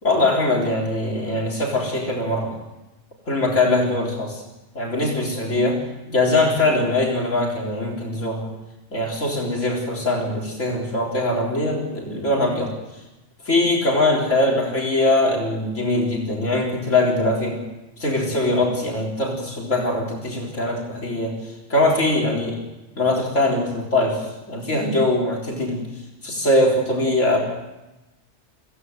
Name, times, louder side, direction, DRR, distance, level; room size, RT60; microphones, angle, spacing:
voice 1, 0.0-2.5 3.3-4.4 4.7-5.8 6.1-8.5 8.9-12.7 13.5-17.6 18.0-21.4 21.7-22.6 23.0-25.9 26.2-27.4, left 2 dB, 85° left, -2 dB, 4.2 m, -22 dB
25.5 x 16.5 x 8.0 m, 1.0 s
omnidirectional pair, 1.2 m